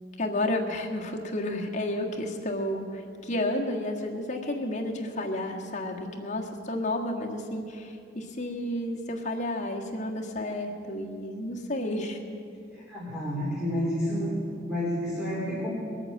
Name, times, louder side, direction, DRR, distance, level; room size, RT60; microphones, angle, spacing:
voice 1, 0.2-12.2, left 1 dB, 35° left, 0 dB, 1.6 m, -31 dB
voice 2, 12.7-14.4 14.7-15.7, equal, 5° right, -8 dB, 3.3 m, -30 dB
20.5 x 8.9 x 7.7 m, 2.5 s
head